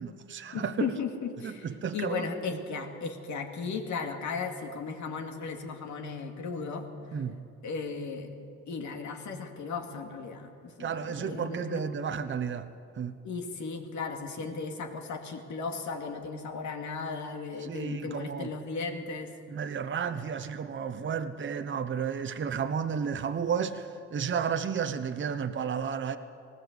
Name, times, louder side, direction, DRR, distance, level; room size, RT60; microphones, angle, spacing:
voice 1, 0.0-0.9 1.4-2.2 2.5-2.6 7.1-7.4 10.8-12.7 12.9-13.2 17.6-18.5 19.5-26.2, right 7 dB, 40° right, 8 dB, 0.9 m, -32 dB
voice 2, 0.5-6.9 7.6-8.3 8.7-11.8 13.2-19.3, left 4 dB, 70° left, 4 dB, 2.4 m, -36 dB
19.5 x 17.0 x 8.1 m, 2.6 s
cardioid pair, 90°, 30 cm